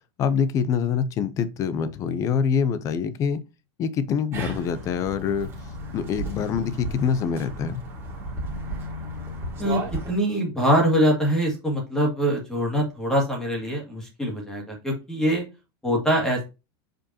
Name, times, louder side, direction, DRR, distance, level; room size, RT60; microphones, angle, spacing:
voice 1, 0.2-3.4 3.8-5.5 5.9-7.8, left 7 dB, 25° left, 0.6 m, -25 dB
sound 1, 4.3-10.1, right 1 dB, 20° right, 2.1 m, -34 dB
voice 2, 10.1-15.4 15.8-16.4, equal, 5° left, 2.0 m, -23 dB
7.0 x 5.1 x 2.9 m
supercardioid pair, 175°, 13 cm